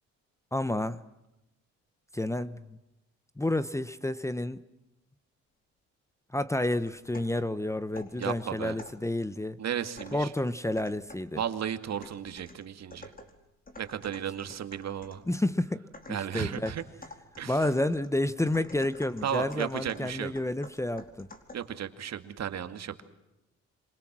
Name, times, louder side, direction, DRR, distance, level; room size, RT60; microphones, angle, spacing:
voice 1, 0.5-1.0 2.1-2.8 3.4-4.6 6.3-9.6 10.1-11.4 15.3-16.7 17.5-21.3, left 1 dB, 10° left, 15 dB, 1.0 m, -30 dB
sound 1, 6.6-7.4 8.0-9.1 10.0-11.4 12.0-15.3 15.9-21.8, left 2 dB, 30° left, 4.6 m, -50 dB
voice 2, 8.2-8.8 9.6-10.3 11.3-13.1 13.8-15.2 16.1-16.8 17.4-17.6 19.2-20.3 21.5-23.0, right 9 dB, 60° right, 9 dB, 2.3 m, -34 dB
27.0 x 27.0 x 6.2 m, 0.92 s
cardioid pair, 90°, 30 cm